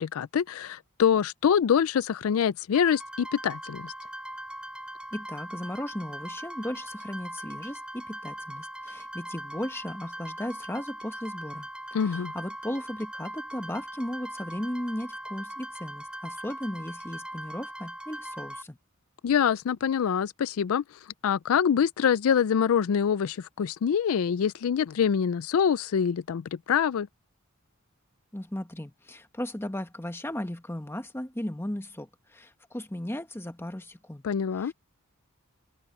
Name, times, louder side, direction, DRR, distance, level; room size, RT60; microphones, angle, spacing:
voice 1, 0.0-3.9 11.9-12.3 19.2-20.8 21.2-27.1 34.2-34.7, left 7 dB, 80° left, 0.4 m, -25 dB
sound 1, 2.7-18.6, right 1 dB, 5° right, 3.9 m, -40 dB
voice 2, 5.1-18.8 28.3-34.2 34.6-34.7, left 1 dB, 10° left, 1.1 m, -36 dB
open air
head